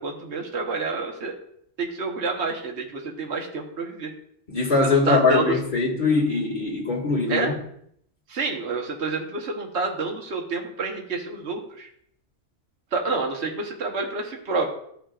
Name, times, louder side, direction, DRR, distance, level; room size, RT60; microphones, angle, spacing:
voice 1, 0.0-1.3 1.8-4.1 4.8-5.6 7.3-7.5 8.3-11.9 12.9-14.7, right 3 dB, 60° right, 1.5 m, -28 dB
voice 2, 4.5-7.5, left 3 dB, 40° left, 2.2 m, -22 dB
14.0 x 5.7 x 2.5 m
omnidirectional pair, 1.3 m